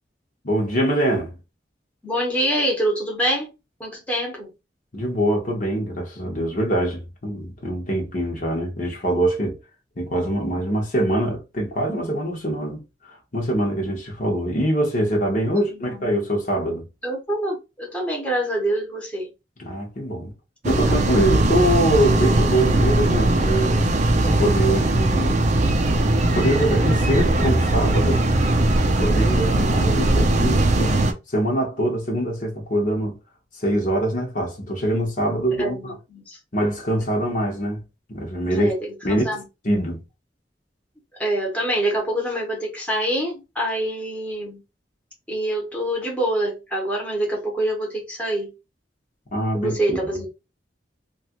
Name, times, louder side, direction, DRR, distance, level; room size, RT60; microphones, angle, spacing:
voice 1, 0.4-1.4 4.9-9.6 10.0-16.9 19.6-20.3 20.6-23.8 24.2-25.5 26.2-28.2 28.8-31.0 31.3-33.2 33.5-36.0 36.5-37.8 38.1-38.7 39.0-40.0 49.3-49.7, right 1 dB, 45° left, 1.0 m, -24 dB
voice 2, 2.0-3.5 3.8-4.5 15.5-15.7 17.0-19.3 35.6-36.4 38.5-39.4 41.2-44.6 45.3-48.5 49.5-50.3, right 1 dB, 10° left, 1.0 m, -25 dB
sound 1, 20.6-31.1, right 1 dB, 40° right, 0.5 m, -19 dB
3.0 x 2.4 x 2.9 m
head